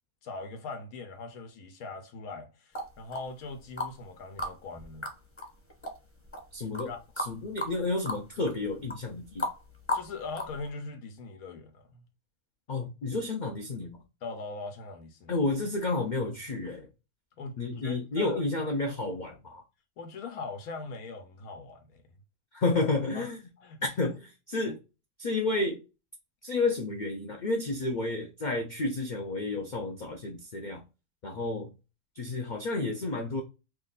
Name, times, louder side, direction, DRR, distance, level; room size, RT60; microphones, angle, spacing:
voice 1, 0.2-5.1 6.6-7.0 9.9-12.0 14.2-15.3 17.4-17.6 17.8-18.4 20.0-22.0 23.1-23.3 23.6-24.1 24.7-24.8, left 3 dB, 85° left, 1.2 m, -41 dB
sound 1, 2.7-4.0 4.4-10.7, left 2 dB, 10° left, 1.1 m, -35 dB
voice 2, 6.5-9.5 12.7-14.0 15.3-16.9 17.6-19.6 22.5-23.4 23.8-24.8 25.2-25.8 26.4-30.8 31.2-31.7 32.1-33.4, left 2 dB, 65° left, 0.4 m, -31 dB
3.1 x 2.5 x 3.9 m
omnidirectional pair, 1.5 m